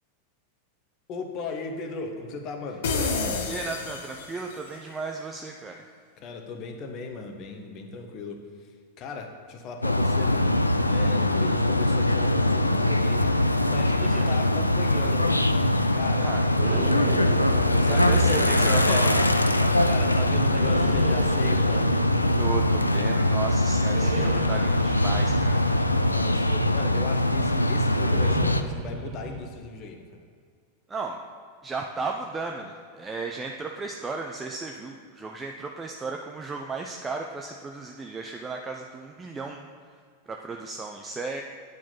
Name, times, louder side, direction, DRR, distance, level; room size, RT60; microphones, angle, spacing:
voice 1, 1.1-2.9 6.2-8.4 9.0-10.5 10.9-13.3 13.6-15.5 15.9-16.3 17.8-22.0 25.9-30.0, left 4 dB, 35° left, 4 dB, 1.1 m, -36 dB
sound 1, 2.8-4.7, left 4 dB, 60° left, 0.9 m, -29 dB
voice 2, 3.4-5.9 14.0-14.4 16.2-16.4 17.8-19.2 19.6-19.9 22.4-25.6 30.9-31.2 31.6-39.6 40.3-41.4, right 4 dB, 15° right, 2 dB, 0.6 m, -35 dB
sound 2, 9.8-28.6, left 1 dB, 85° left, 0.4 m, -22 dB
sound 3, 16.5-20.1 20.5-22.9 23.9-26.7 28.0-29.4, right 4 dB, 50° right, 1.1 m, -35 dB
9.3 x 4.9 x 5.4 m, 2.2 s
figure-of-eight pair, 90°, 0 cm